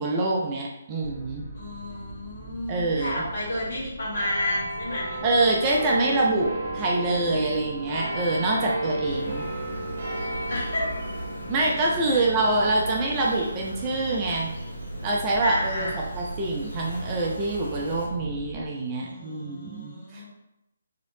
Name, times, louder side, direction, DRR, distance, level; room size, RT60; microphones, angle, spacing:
voice 1, 0.0-1.5 2.7-3.2 5.2-9.5 11.5-14.5 15.0-15.9 16.1-20.3, right 2 dB, 20° right, -2 dB, 0.5 m, -25 dB
sound 1, 1.0-18.6, right 1 dB, 10° left, 1.1 m, -42 dB
voice 2, 1.5-5.2 10.5-10.9 12.1-12.3 15.4-16.0 19.0-20.3, left 1 dB, 50° left, -6 dB, 1.3 m, -31 dB
sound 2, 4.1-17.0 17.7-17.8, right 1 dB, 50° right, 0.8 m, -35 dB
Insect, 9.0-18.1, right 1 dB, 65° left, 1.1 m, -38 dB
3.0 x 2.8 x 2.7 m, 0.87 s
figure-of-eight pair, 145°, 0 cm